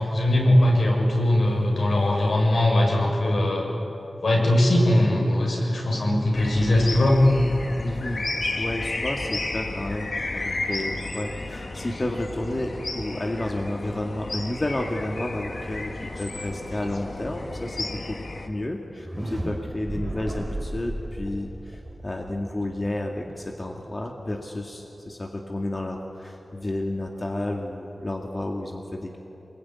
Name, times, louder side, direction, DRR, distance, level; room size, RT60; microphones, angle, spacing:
voice 1, 0.0-3.7 4.2-7.2, left 1 dB, 75° left, -1 dB, 6.9 m, -20 dB
sound 1, 6.3-18.5, left 2 dB, 55° left, 2.0 m, -32 dB
voice 2, 7.8-8.3 8.6-18.2 18.5-29.2, left 1 dB, 30° left, 1 dB, 2.1 m, -31 dB
sound 2, 18.9-24.8, right 1 dB, 15° right, 3.5 m, -35 dB
26.0 x 22.0 x 9.7 m, 3.0 s
wide cardioid pair, 90°, 0 cm